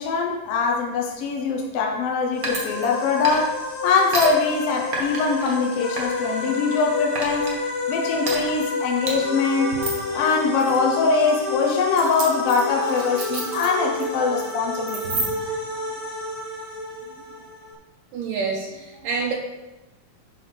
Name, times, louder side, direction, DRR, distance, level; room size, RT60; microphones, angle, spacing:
voice 1, 0.0-7.5 7.9-9.8 10.1-15.1, left 4 dB, 75° left, 0 dB, 1.4 m, -22 dB
sound 1, 2.3-17.7, left 3 dB, 55° left, 1.1 m, -30 dB
sound 2, 2.4-3.0 3.2-3.6 4.1-4.3 4.9-5.5 6.0-6.8 7.1-7.5 8.2-8.4 9.1-9.2 9.7-10.1 10.6-10.8 11.9-14.0 14.3-14.5 14.9-15.5, right 3 dB, 90° right, 0.7 m, -30 dB
voice 2, 18.1-19.3, right 5 dB, 75° right, -2 dB, 2.4 m, -28 dB
11.0 x 5.2 x 4.0 m, 1.1 s
omnidirectional pair, 4.1 m